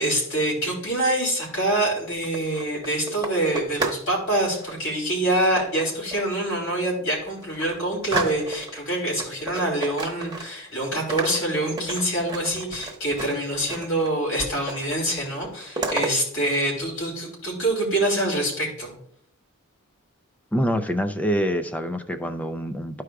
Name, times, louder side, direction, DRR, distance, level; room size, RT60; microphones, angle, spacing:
voice 1, 0.0-19.0, right 1 dB, 60° left, -3 dB, 3.2 m, -25 dB
sound 1, 2.1-4.1 4.4-4.8 5.6-6.4 6.8-6.9 7.2-8.8 9.2-10.7 10.9-14.1 14.4-15.0 15.2-16.1, right 3 dB, 15° right, 1.0 m, -32 dB
voice 2, 20.5-23.0, equal, 5° left, 8 dB, 0.5 m, -25 dB
13.0 x 4.8 x 2.3 m, 0.68 s
head